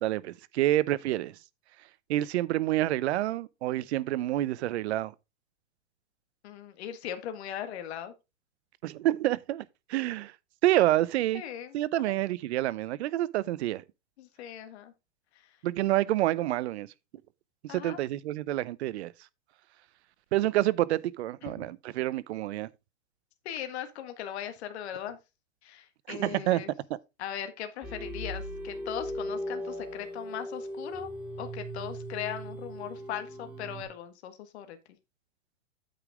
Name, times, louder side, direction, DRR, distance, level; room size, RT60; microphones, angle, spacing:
voice 1, 0.0-1.4 2.1-5.1 8.8-9.6 9.9-10.3 10.6-11.4 11.7-13.8 15.6-16.9 17.6-19.1 20.3-22.7 26.1-26.6, right 15 dB, 60° right, 0.7 m, -28 dB
voice 2, 6.4-8.1 11.3-12.1 14.2-14.9 17.7-18.0 21.5-21.7 23.5-25.2 25.6-26.7 27.2-31.1 31.4-34.8, left 10 dB, 60° left, 1.7 m, -39 dB
sound 1, 27.8-33.8, equal, 5° right, 1.4 m, -38 dB
8.9 x 5.0 x 4.8 m
supercardioid pair, 155°, 37 cm